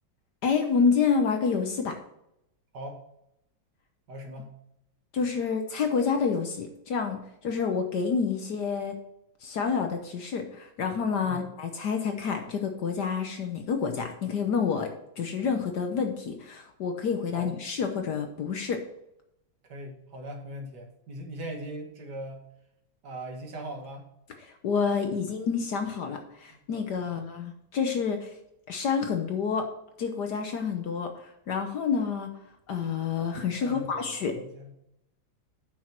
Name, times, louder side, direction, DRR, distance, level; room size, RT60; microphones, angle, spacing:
voice 1, 0.4-2.0 5.1-9.0 9.4-18.8 24.4-28.4 28.7-29.7 30.0-32.4 32.7-34.5, left 5 dB, 60° left, 5 dB, 1.3 m, -28 dB
voice 2, 4.1-4.5 11.2-11.4 17.3-17.5 19.6-22.4 23.0-24.0 26.5-26.6 27.0-27.1 33.6-34.7, right 1 dB, 55° right, 2 dB, 2.0 m, -40 dB
8.7 x 6.2 x 4.5 m, 0.80 s
omnidirectional pair, 2.3 m